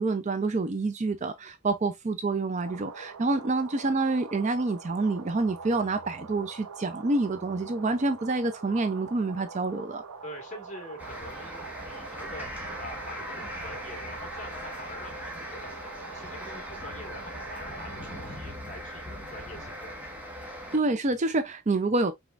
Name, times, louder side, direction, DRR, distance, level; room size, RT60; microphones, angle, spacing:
voice 1, 0.0-10.0 20.7-22.1, right 3 dB, 30° right, 0.4 m, -27 dB
sound 1, 2.7-18.4, right 4 dB, 85° right, 0.7 m, -45 dB
voice 2, 10.2-12.5 12.8-15.7 16.1-20.3, left 1 dB, 30° left, 1.6 m, -45 dB
sound 2, 11.0-20.8, equal, 5° right, 1.1 m, -40 dB
5.1 x 3.5 x 2.4 m
head